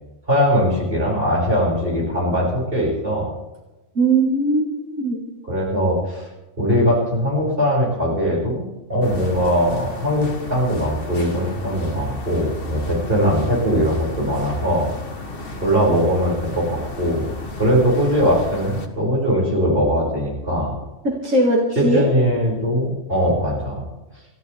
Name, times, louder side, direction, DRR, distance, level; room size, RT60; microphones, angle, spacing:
voice 1, 0.3-3.3 5.4-6.3 6.6-8.6 8.9-14.9 15.6-17.3 17.6-20.7 21.7-23.8, equal, 45° right, -4 dB, 6.5 m, -20 dB
voice 2, 4.0-5.2 21.0-22.0, right 2 dB, 85° right, -2 dB, 2.5 m, -19 dB
sound 1, 9.0-18.9, left 2 dB, 50° left, 1.7 m, -34 dB
29.5 x 14.0 x 3.5 m, 1.1 s
omnidirectional pair, 1.3 m